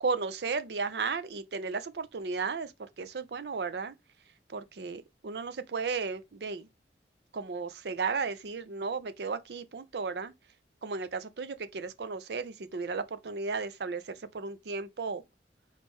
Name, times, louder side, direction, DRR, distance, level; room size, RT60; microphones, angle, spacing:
voice 1, 0.0-2.7 3.0-3.9 4.5-6.7 7.3-10.3 10.8-15.2, right 4 dB, 70° right, 0.5 m, -34 dB
4.0 x 3.1 x 3.5 m
head